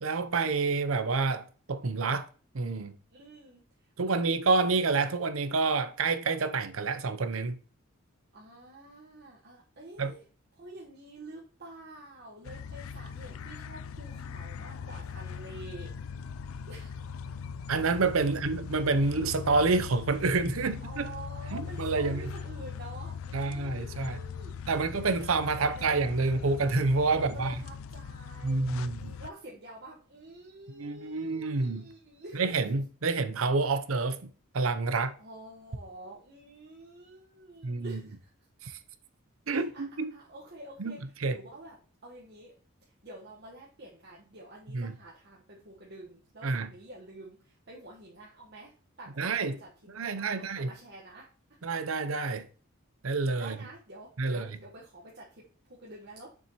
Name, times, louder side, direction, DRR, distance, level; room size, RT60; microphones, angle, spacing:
voice 1, 0.0-2.3 2.5-3.0 4.0-7.6 10.0-10.1 17.7-21.0 21.5-22.3 23.3-24.2 24.7-27.5 28.4-29.1 30.8-31.9 32.3-35.1 37.6-38.0 38.6-38.7 39.5-40.1 40.8-41.4 44.7-44.9 46.4-46.7 49.2-49.6 49.9-50.7 51.6-52.5 53.0-53.6 54.2-54.4, right 3 dB, 85° right, 0.7 m, -28 dB
voice 2, 3.1-3.6 4.0-4.4 8.3-10.2 10.5-15.9 16.7-17.0 20.8-24.8 25.6-25.9 27.1-32.5 34.9-38.3 39.5-41.0 41.3-41.8 42.0-42.5 42.8-48.7 49.0-49.7 50.0-51.3 53.4-56.3, right 1 dB, 55° right, 1.4 m, -48 dB
sound 1, 12.4-29.3, left 6 dB, 90° left, 0.4 m, -40 dB
7.0 x 6.1 x 3.0 m
head